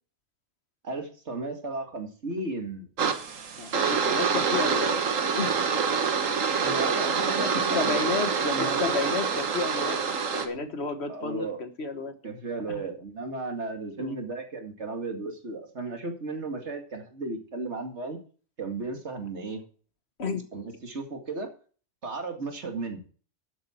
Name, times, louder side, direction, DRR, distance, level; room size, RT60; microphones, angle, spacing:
voice 1, 0.8-2.9 6.6-8.0 8.5-9.0 11.1-11.6 12.2-18.2 18.6-19.6 20.5-21.5 22.0-23.0, right 3 dB, 60° right, 4 dB, 2.4 m, -34 dB
sound 1, 3.0-10.5, right 6 dB, 85° right, 1.6 m, -26 dB
voice 2, 3.6-5.0 5.4-5.6 7.3-12.1 12.7-12.8 14.0-14.2 20.2-20.4, left 4 dB, 55° left, 8 dB, 1.6 m, -32 dB
12.0 x 8.5 x 4.4 m, 0.41 s
omnidirectional pair, 1.3 m